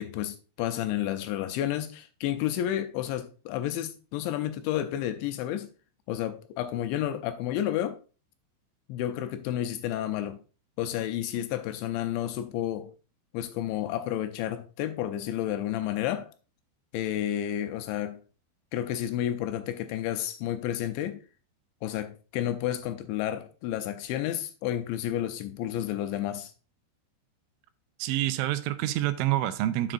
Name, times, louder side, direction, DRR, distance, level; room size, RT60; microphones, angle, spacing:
voice 1, 0.0-5.7 6.1-8.0 8.9-10.4 10.8-12.9 13.3-16.3 16.9-18.2 18.7-21.2 21.8-26.5, left 12 dB, 80° left, 2.8 m, -31 dB
voice 2, 28.0-29.9, right 14 dB, 85° right, 3.0 m, -27 dB
9.8 x 7.8 x 2.5 m
omnidirectional pair, 5.5 m